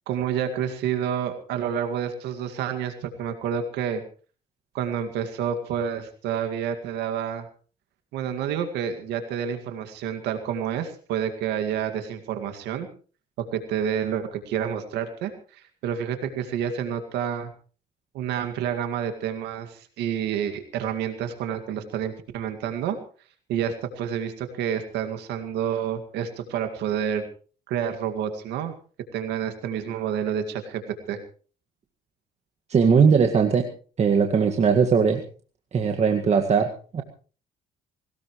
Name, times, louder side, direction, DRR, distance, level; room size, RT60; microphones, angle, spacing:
voice 1, 0.1-4.0 4.7-7.5 8.1-12.9 13.4-17.5 18.1-23.0 23.5-27.3 27.7-28.7 29.1-30.8 31.1-31.2, right 8 dB, 85° right, 7 dB, 2.1 m, -29 dB
voice 2, 32.7-33.6 34.0-35.2 35.7-37.0, right 6 dB, 40° right, 3 dB, 1.9 m, -19 dB
21.0 x 18.5 x 3.2 m, 0.39 s
cardioid pair, 110°, 17 cm